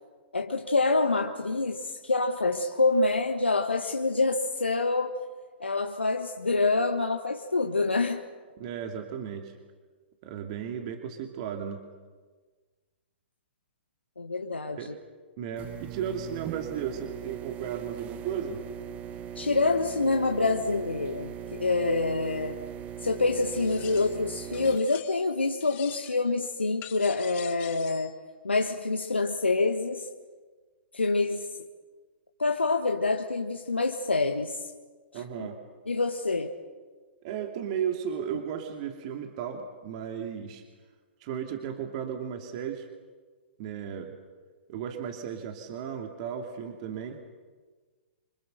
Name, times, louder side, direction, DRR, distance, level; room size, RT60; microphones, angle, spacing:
voice 1, 0.3-5.1 5.6-8.2 14.2-14.9 19.3-22.6 23.0-28.1 28.4-30.1 30.9-31.5 32.4-34.6 35.1-35.5 35.9-36.5, left 3 dB, 80° left, 4 dB, 1.6 m, -26 dB
voice 2, 8.6-9.5 10.2-11.8 14.7-14.9 15.4-18.6 35.1-35.6 37.2-40.6 41.2-42.9 43.6-44.2 44.7-47.2, right 8 dB, 40° right, 4 dB, 2.7 m, -35 dB
sound 1, 15.6-24.8, right 9 dB, 25° right, 1.1 m, -40 dB
sound 2, 23.5-24.2 24.5-25.3 25.6-26.3 26.8-28.1, left 13 dB, 25° left, 1.4 m, -45 dB
27.5 x 26.0 x 6.7 m, 1.4 s
figure-of-eight pair, 115°, 6 cm